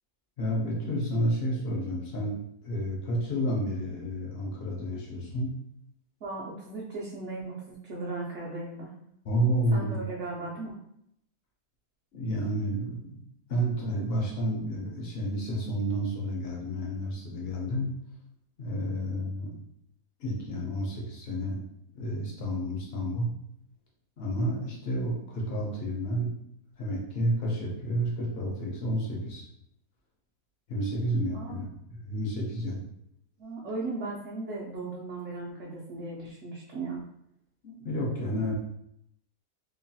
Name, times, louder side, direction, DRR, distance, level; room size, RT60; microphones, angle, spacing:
voice 1, 0.4-2.4 2.6-5.5 9.2-10.0 12.1-13.2 13.5-17.9 18.6-19.6 20.2-21.6 21.9-23.3 24.2-26.3 26.8-29.4 30.7-31.7 32.0-32.8 37.6-38.5, equal, 60° left, -2 dB, 0.6 m, -30 dB
voice 2, 6.2-8.9 9.7-10.8 31.3-31.6 33.4-37.1, right 3 dB, 65° right, -4 dB, 0.7 m, -37 dB
2.9 x 2.2 x 2.6 m, 0.75 s
omnidirectional pair, 1.7 m